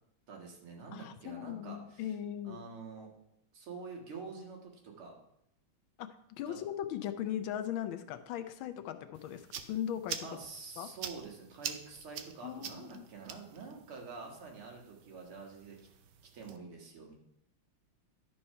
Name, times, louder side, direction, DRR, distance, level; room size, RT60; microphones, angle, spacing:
voice 1, 0.3-2.2 2.4-3.1 3.5-5.2 6.5-6.6 10.2-15.8 16.3-17.2, right 4 dB, 85° right, 0 dB, 2.6 m, -47 dB
voice 2, 0.9-2.6 6.0-9.4 9.7-10.3 10.8-10.9 12.4-13.1, left 10 dB, 75° left, 10 dB, 1.4 m, -38 dB
sound 1, 9.1-16.6, right 8 dB, 70° right, 1.1 m, -46 dB
11.5 x 4.4 x 5.5 m, 0.76 s
omnidirectional pair, 2.3 m